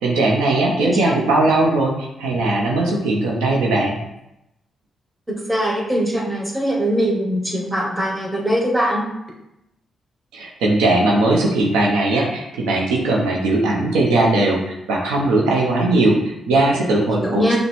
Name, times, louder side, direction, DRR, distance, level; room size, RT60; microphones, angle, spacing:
voice 1, 0.0-4.0 10.3-17.6, right 2 dB, 90° right, -1 dB, 0.6 m, -19 dB
voice 2, 0.8-1.1 5.3-9.0 17.2-17.6, equal, 15° right, -2 dB, 1.3 m, -21 dB
5.8 x 2.1 x 3.4 m, 0.87 s
supercardioid pair, 50°, 0 cm